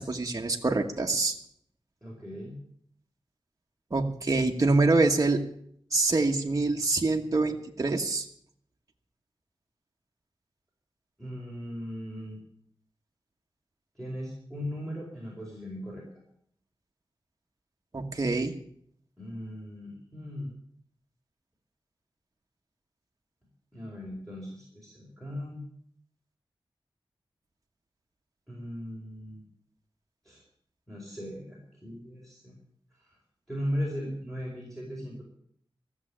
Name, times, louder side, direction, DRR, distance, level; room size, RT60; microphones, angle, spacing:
voice 1, 0.0-1.3 3.9-5.5 5.9-8.3 17.9-18.5, right 3 dB, 40° right, 1 dB, 1.4 m, -25 dB
voice 2, 2.0-2.6 11.2-12.4 13.9-16.0 19.2-20.5 23.7-25.6 28.5-29.4 30.2-30.4 30.9-32.5 33.0-33.2 33.5-35.2, equal, ahead, -5 dB, 4.9 m, -38 dB
14.5 x 7.3 x 9.9 m, 0.66 s
wide cardioid pair, 95°, 9 cm